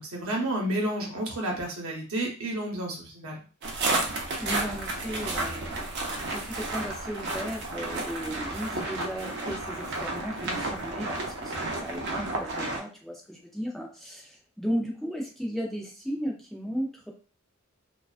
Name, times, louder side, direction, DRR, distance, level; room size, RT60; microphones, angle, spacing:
voice 1, 0.0-3.4, right 1 dB, 90° right, 0 dB, 0.8 m, -31 dB
sound 1, 3.6-12.8, right 2 dB, 55° right, 0.5 m, -32 dB
voice 2, 4.4-5.9 6.3-17.1, equal, ahead, -1 dB, 0.4 m, -35 dB
2.3 x 2.2 x 2.4 m, 0.37 s
head